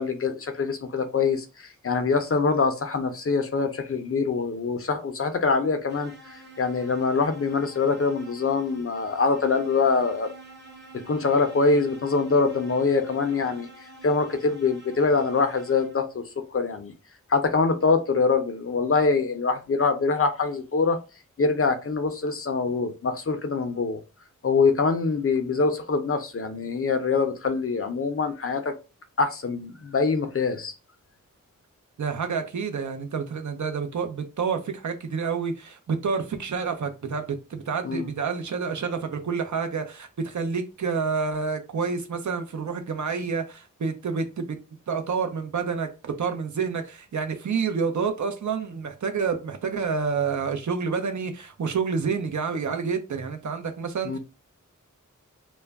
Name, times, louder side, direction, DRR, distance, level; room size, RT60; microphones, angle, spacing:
voice 1, 0.0-6.1 6.6-10.3 11.1-13.7 14.0-16.2 16.5-16.9 17.3-21.0 21.4-24.0 24.4-28.7 29.2-30.7 37.8-38.1 54.0-54.2, left 4 dB, 45° left, 0.5 m, -24 dB
sound 1, 5.9-16.2, right 2 dB, 35° right, 0.9 m, -48 dB
voice 2, 32.0-44.4 44.9-54.2, right 5 dB, 65° right, 0.5 m, -28 dB
2.2 x 2.1 x 3.4 m
cardioid pair, 45°, 32 cm